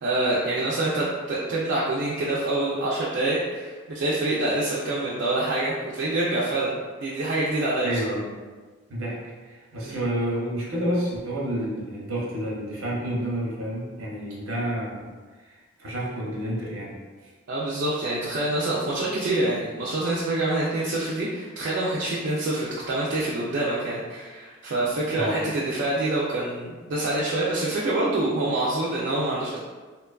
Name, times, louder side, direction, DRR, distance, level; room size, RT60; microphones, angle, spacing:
voice 1, 0.0-8.0 9.8-10.0 17.5-29.6, right 2 dB, 60° right, -6 dB, 0.3 m, -26 dB
voice 2, 7.8-8.3 8.9-9.2 9.5-15.0 15.4-15.5 15.8-17.0 25.1-25.5, equal, 85° right, -4 dB, 0.7 m, -29 dB
2.8 x 2.2 x 2.2 m, 1.4 s
head